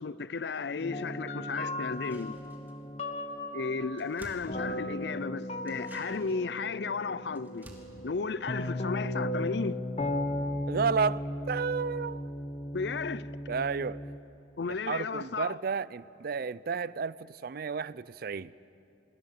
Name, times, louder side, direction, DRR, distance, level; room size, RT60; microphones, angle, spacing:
voice 1, 0.0-2.4 3.5-7.7 8.0-9.8 12.7-13.3 14.6-15.5, left 4 dB, 65° left, 0.5 m, -34 dB
sound 1, 0.8-14.2, left 1 dB, 35° left, 1.3 m, -36 dB
sound 2, 1.8-3.0 3.3-3.4 3.6-5.2 5.6-9.4 9.6-9.7, equal, 10° right, 2.6 m, -53 dB
voice 2, 10.7-12.3 13.5-14.0 14.9-18.5, right 5 dB, 55° right, 0.4 m, -32 dB
27.5 x 20.5 x 6.8 m
head